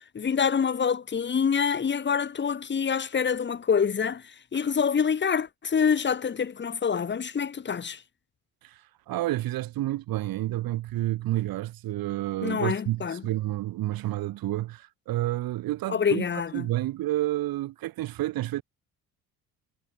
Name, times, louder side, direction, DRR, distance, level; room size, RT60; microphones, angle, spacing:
voice 1, 0.1-4.2 4.5-8.0 12.4-13.2 15.9-16.7, left 6 dB, 30° left, 1.8 m, -26 dB
voice 2, 8.6-16.2 16.5-18.6, right 15 dB, 75° right, 2.9 m, -30 dB
cardioid pair, 115°, 35 cm